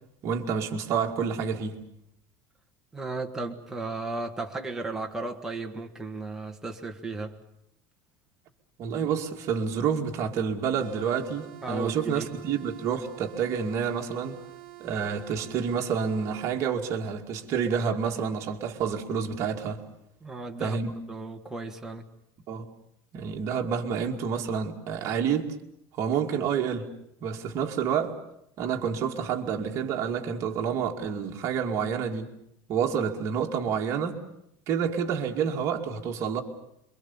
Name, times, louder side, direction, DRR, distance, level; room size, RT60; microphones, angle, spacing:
voice 1, 0.2-1.8 8.8-14.4 14.8-19.8 20.6-20.9 22.5-22.7 23.1-25.5 25.9-26.9 27.2-28.2 28.6-32.3 32.7-34.2 34.7-36.4, right 7 dB, 35° right, 2.4 m, -28 dB
voice 2, 2.9-7.4 11.6-12.3 20.2-20.8 21.1-22.1, right 3 dB, 5° right, 1.6 m, -35 dB
sound 1, 10.8-16.6, right 19 dB, 55° right, 2.0 m, -47 dB
27.0 x 23.5 x 7.2 m
cardioid pair, 170°, 8 cm